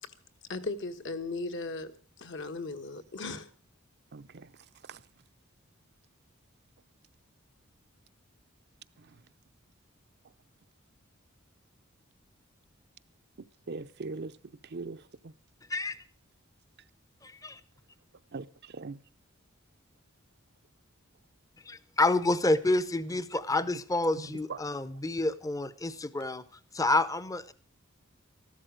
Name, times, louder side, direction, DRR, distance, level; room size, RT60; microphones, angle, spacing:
voice 1, 0.5-1.9 2.2-3.5, left 3 dB, 60° left, 1.4 m, -37 dB
voice 2, 4.1-4.5 4.9-5.0 13.7-14.3 14.7-15.3 18.3-18.5 18.7-19.0, right 3 dB, 55° right, 0.6 m, -40 dB
voice 3, 17.2-17.6 21.6-26.4 26.7-27.5, left 2 dB, 15° left, 0.7 m, -28 dB
14.0 x 12.5 x 6.3 m
head